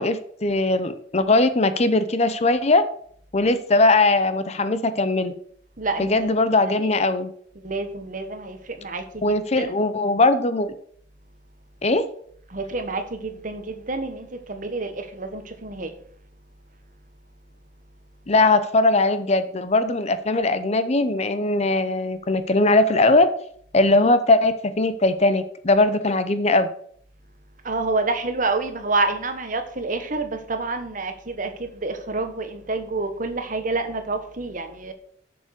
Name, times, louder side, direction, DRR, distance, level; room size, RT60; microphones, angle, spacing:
voice 1, 0.0-2.8 3.3-5.3 6.0-7.3 9.2-10.7 11.8-12.1 18.3-23.3 23.7-26.7, left 2 dB, 35° left, 0.7 m, -20 dB
voice 2, 5.8-6.1 7.6-9.2 9.6-9.7 12.5-15.9 27.6-34.9, right 3 dB, 45° right, 1.3 m, -28 dB
7.3 x 7.0 x 6.5 m
head